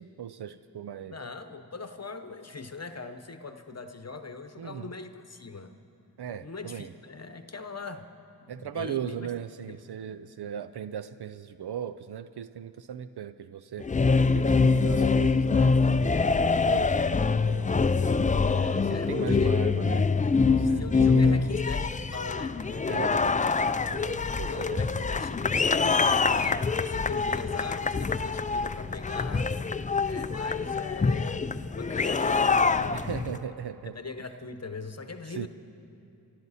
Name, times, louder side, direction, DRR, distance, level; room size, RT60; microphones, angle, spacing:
voice 1, 0.0-1.2 4.6-4.9 6.2-6.9 8.5-13.9 14.3-17.7 18.4-20.1 20.5-21.6 22.7-25.1 32.9-33.9 35.3-35.5, right 8 dB, 75° right, 12 dB, 0.5 m, -38 dB
voice 2, 1.1-5.7 6.4-8.1 8.5-9.3 9.7-9.8 18.9-19.6 20.7-22.6 24.2-29.5 30.0-31.5 31.8-33.5 33.9-35.5, left 4 dB, 40° left, 8 dB, 0.9 m, -40 dB
sound 1, 13.8-33.4, left 4 dB, 20° left, 0.3 m, -25 dB
27.0 x 12.0 x 4.1 m, 2.7 s
cardioid pair, 40°, 40 cm